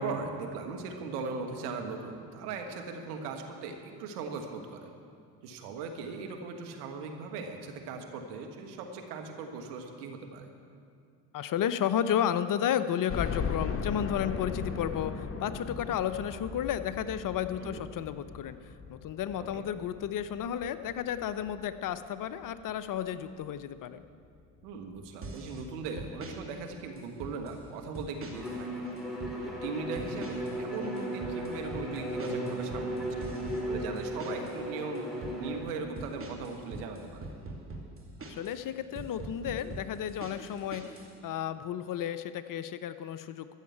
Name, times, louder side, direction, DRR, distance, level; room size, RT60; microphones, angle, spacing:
voice 1, 0.0-4.9 5.4-10.5 17.6-17.8 19.5-19.6 24.6-28.7 29.4-33.2 33.7-35.0 35.4-37.3, right 4 dB, 75° right, 4 dB, 1.6 m, -39 dB
voice 2, 11.3-18.6 18.9-24.0 38.3-43.5, left 9 dB, 45° left, 12 dB, 0.7 m, -32 dB
sound 1, 13.1-22.0 22.5-22.6 23.0-23.1 24.2-24.3 24.6-24.7, left 5 dB, 30° left, 1.3 m, -38 dB
sound 2, 25.2-25.6 26.0-26.4 27.0-27.6 27.9-28.6 28.8-29.4 29.9-30.6 30.8-34.6 34.9-35.4 36.0-38.6 38.9-41.1, right 2 dB, 30° right, 2.5 m, -43 dB
Bowed string instrument, 28.3-35.7, equal, ahead, 3.4 m, -36 dB
14.0 x 7.3 x 8.7 m, 2.3 s
hypercardioid pair, 60°, 46 cm